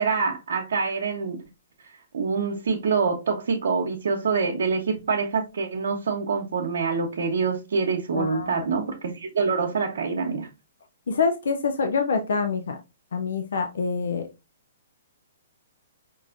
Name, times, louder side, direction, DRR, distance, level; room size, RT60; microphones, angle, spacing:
voice 1, 0.0-1.4 2.1-10.5, right 5 dB, 75° right, 0.6 m, -25 dB
voice 2, 8.1-8.5 11.1-12.8 13.1-14.2, left 5 dB, 80° left, 0.5 m, -26 dB
4.6 x 2.5 x 2.4 m
hypercardioid pair, 145°, 0 cm